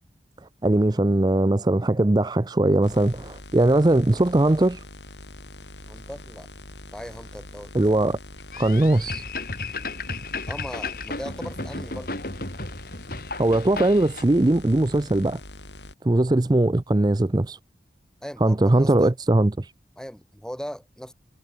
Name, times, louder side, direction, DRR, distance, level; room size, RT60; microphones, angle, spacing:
voice 1, 0.6-4.8 7.7-8.2 8.6-9.2 13.4-15.4 16.0-17.6 18.4-19.7, right 1 dB, 25° right, 0.5 m, -20 dB
sound 1, 2.8-15.9, left 1 dB, 85° left, 7.3 m, -43 dB
voice 2, 5.9-6.5 6.9-7.7 10.5-12.1 18.2-19.1 20.0-21.1, equal, 5° left, 3.8 m, -38 dB
sound 2, 8.5-14.2, left 3 dB, 55° left, 6.2 m, -34 dB
head